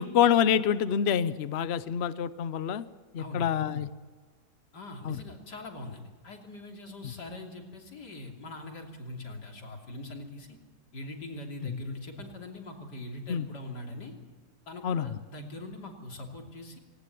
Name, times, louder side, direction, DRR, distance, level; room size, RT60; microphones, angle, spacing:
voice 1, 0.0-2.8 3.1-3.9 5.0-5.2 7.0-7.1 11.7-11.8 13.3-13.5 14.8-15.1, left 8 dB, 50° left, 14 dB, 0.9 m, -26 dB
voice 2, 3.2-3.5 4.7-10.6 10.9-14.1 14.7-16.8, left 2 dB, 85° left, 2 dB, 3.6 m, -42 dB
19.0 x 18.5 x 9.3 m, 1.5 s
omnidirectional pair, 1.7 m